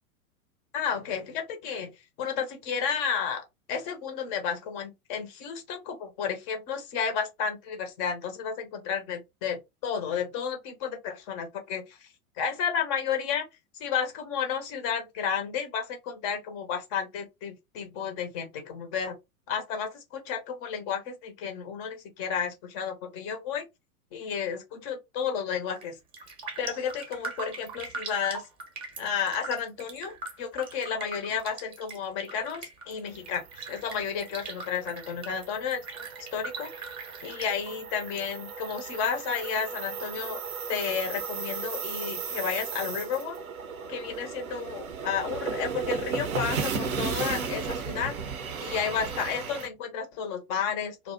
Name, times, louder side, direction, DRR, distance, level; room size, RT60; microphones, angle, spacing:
voice 1, 0.7-1.9 2.2-12.1 12.4-13.5 13.7-19.1 19.5-23.7 24.1-26.0 26.6-28.5 29.0-35.8 36.3-36.9 37.2-40.4 40.7-43.4 43.9-48.1 48.6-51.1, left 7 dB, 20° left, 0.4 m, -32 dB
Raindrop, 25.6-25.9 26.1-38.2 38.5-39.5 39.9-40.0, right 4 dB, 20° right, 0.6 m, -41 dB
sound 1, 33.2-49.7, right 5 dB, 75° right, 0.6 m, -35 dB
2.5 x 2.1 x 2.3 m
figure-of-eight pair, 95°, 43 cm